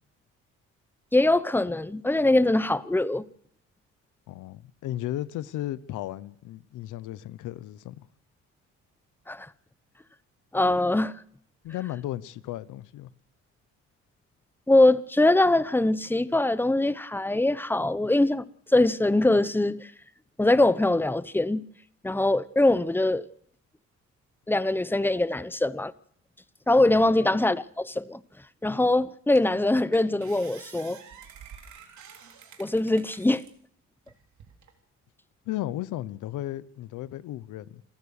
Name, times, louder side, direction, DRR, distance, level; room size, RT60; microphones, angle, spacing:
voice 1, 1.1-3.2 9.3-9.5 10.5-11.2 14.7-19.9 20.4-21.6 22.0-23.3 24.5-25.9 26.7-28.2 28.6-31.0 32.6-33.4, left 2 dB, 5° left, 0.8 m, -23 dB
voice 2, 4.3-8.1 11.6-13.1 26.9-27.1 35.4-37.8, left 14 dB, 90° left, 1.0 m, -35 dB
sound 1, 28.7-28.8 29.4-29.6 29.9-33.5 34.1-34.7, right 7 dB, 70° right, 3.7 m, -49 dB
27.5 x 14.5 x 6.7 m
cardioid pair, 90°, 30 cm